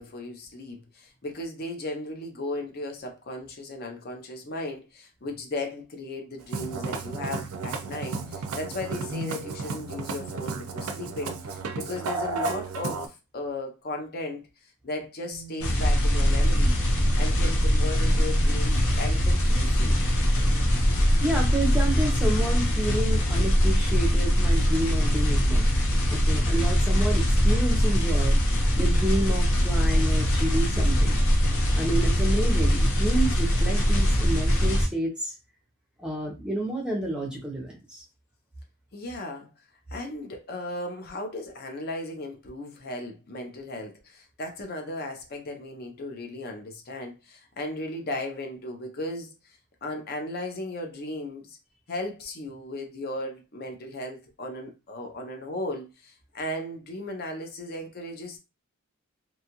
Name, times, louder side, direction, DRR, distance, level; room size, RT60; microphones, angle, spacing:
voice 1, 0.0-14.4 14.8-16.8 17.2-20.0 38.9-39.5 39.9-51.6 51.9-58.4, left 1 dB, 45° left, 0.5 m, -36 dB
Musical instrument, 6.4-13.1, right 3 dB, 70° right, 0.4 m, -33 dB
sound 1, 15.3-28.4, right 10 dB, 80° left, 1.0 m, -48 dB
sound 2, 15.6-34.9, equal, 65° left, 0.8 m, -22 dB
voice 2, 21.2-25.7 26.1-28.4 28.7-31.2 31.4-35.3 36.0-38.0, right 1 dB, 5° right, 0.6 m, -30 dB
2.6 x 2.3 x 2.8 m
head